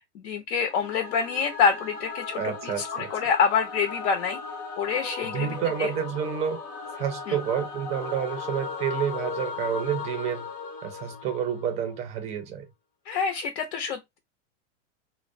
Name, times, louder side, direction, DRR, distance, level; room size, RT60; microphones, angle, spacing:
voice 1, 0.1-4.4 4.8-5.9 7.3-7.4 13.1-14.2, left 6 dB, 70° left, 0.6 m, -27 dB
Singing / Musical instrument, 0.6-11.9, left 5 dB, 30° left, 0.6 m, -37 dB
voice 2, 2.4-3.1 5.2-6.6 6.9-10.5 10.8-12.6, right 8 dB, 20° right, 0.4 m, -29 dB
2.4 x 2.0 x 2.5 m
supercardioid pair, 140°, 37 cm